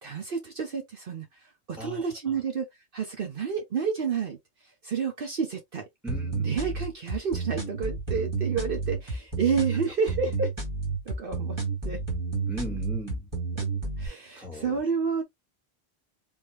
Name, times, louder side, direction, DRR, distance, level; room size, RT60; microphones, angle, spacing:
voice 1, 0.0-2.7 2.9-4.4 4.8-5.8 6.4-10.5 11.1-11.6 11.8-12.0 14.0-15.2, right 6 dB, 60° right, 1.0 m, -30 dB
voice 2, 1.8-2.4 6.0-6.6 10.2-10.3 12.5-13.3 14.3-14.8, right 1 dB, ahead, 1.6 m, -38 dB
sound 1, 6.1-14.1, right 4 dB, 25° right, 1.7 m, -31 dB
3.6 x 2.8 x 3.0 m
omnidirectional pair, 1.1 m